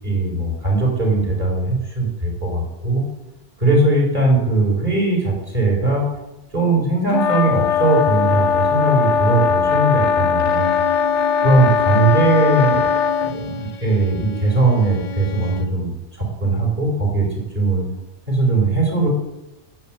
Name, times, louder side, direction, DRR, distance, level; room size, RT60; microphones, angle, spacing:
voice 1, 0.0-3.0 3.6-6.0 6.5-10.8 11.4-12.9 13.2-17.3 17.5-17.8 18.3-19.1, right 2 dB, 45° right, -1 dB, 5.0 m, -19 dB
sound 1, 7.1-13.3, left 7 dB, 85° left, 1.0 m, -19 dB
Bowed string instrument, 10.4-15.8, left 1 dB, 40° left, 0.8 m, -32 dB
10.5 x 9.3 x 7.7 m, 0.97 s
omnidirectional pair, 1.2 m